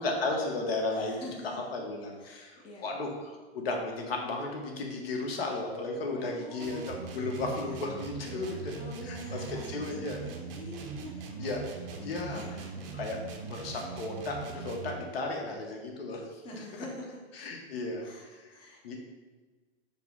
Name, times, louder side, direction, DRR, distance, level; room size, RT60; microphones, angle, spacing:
voice 1, 0.0-1.2 1.5-8.7 9.1-10.2 11.4-11.6 12.0-12.4 13.0-16.6 17.4-18.5 18.8-19.0, left 2 dB, 70° left, 1 dB, 1.0 m, -34 dB
voice 2, 0.9-1.8 2.2-2.9 6.1-7.3 7.6-7.8 8.2-13.0 13.8-14.0 16.4-17.2 18.0-19.0, left 1 dB, 15° left, -1 dB, 0.5 m, -46 dB
sound 1, 6.6-15.1, right 4 dB, 60° right, 0.6 m, -41 dB
5.3 x 2.1 x 3.8 m, 1.3 s
hypercardioid pair, 120°, 32 cm